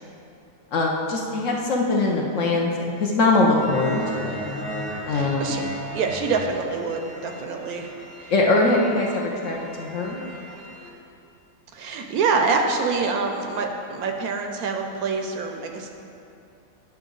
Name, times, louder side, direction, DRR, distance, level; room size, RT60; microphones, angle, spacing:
voice 1, 0.7-2.7 3.0-4.4 5.1-5.6 8.3-10.2, left 2 dB, 60° left, -1 dB, 0.9 m, -22 dB
sound 1, 3.5-10.9, equal, 10° left, 0.8 m, -36 dB
voice 2, 5.1-7.9 8.2-8.3 11.7-15.9, right 4 dB, 70° right, 3 dB, 1.0 m, -26 dB
9.1 x 5.8 x 3.8 m, 2.7 s
omnidirectional pair, 1.8 m